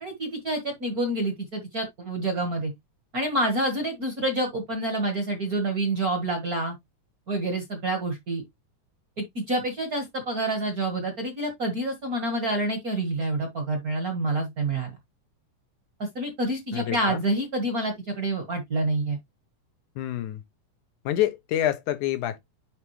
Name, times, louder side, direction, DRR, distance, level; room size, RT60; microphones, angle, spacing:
voice 1, 0.0-2.7 3.1-6.7 7.3-8.4 9.2-15.0 16.0-19.2, right 2 dB, 40° right, 1.3 m, -28 dB
voice 2, 16.7-17.2 20.0-20.4 21.1-22.4, left 12 dB, 75° left, 2.3 m, -27 dB
9.3 x 3.5 x 3.2 m
omnidirectional pair, 3.6 m